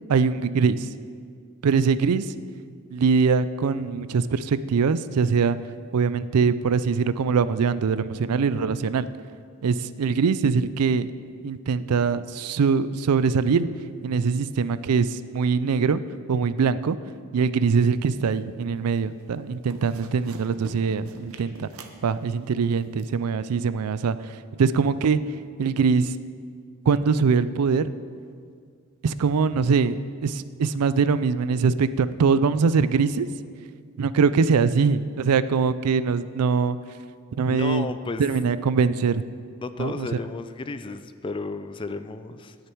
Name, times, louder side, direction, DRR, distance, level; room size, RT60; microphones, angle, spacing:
voice 1, 0.1-0.9 1.6-2.3 2.9-5.6 5.9-9.1 9.6-11.1 11.4-13.7 14.0-16.0 16.3-17.0 17.3-21.7 22.0-24.2 24.6-25.2 25.6-26.1 26.9-27.9 29.0-33.3 34.0-36.8 37.4-37.9 38.2-39.2 39.8-40.1, right 5 dB, 85° right, 15 dB, 0.4 m, -22 dB
sound 1, 18.0-18.6 18.9-19.2 19.5-23.1, right 3 dB, 70° right, 0.8 m, -45 dB
voice 2, 37.5-38.3 39.6-42.6, left 3 dB, 20° left, 11 dB, 0.3 m, -33 dB
17.5 x 6.6 x 4.5 m, 2.2 s
head